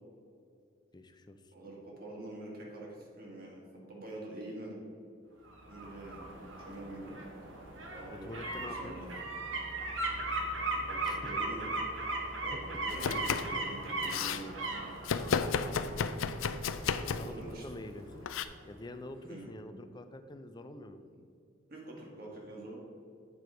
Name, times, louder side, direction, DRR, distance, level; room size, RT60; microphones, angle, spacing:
voice 1, 0.9-1.5 8.1-9.0 11.0-11.3 12.5-12.6 15.3-16.0 17.2-18.2 18.6-21.0, left 1 dB, 20° left, 8 dB, 0.4 m, -46 dB
voice 2, 1.5-3.6 3.9-4.8 5.7-6.2 6.6-7.2 7.9-9.1 10.0-10.1 10.7-11.8 12.4-14.9 17.0-17.7 19.3-19.5 21.7-22.8, right 1 dB, 50° right, -2 dB, 1.8 m, -45 dB
sound 1, 5.5-18.3 18.6-18.7, right 2 dB, 75° right, 1.1 m, -38 dB
Domestic sounds home sounds, 12.9-13.6 13.9-14.4 15.0-17.4 18.2-18.4, left 6 dB, 85° left, 0.4 m, -33 dB
8.4 x 4.6 x 5.0 m, 2.5 s
head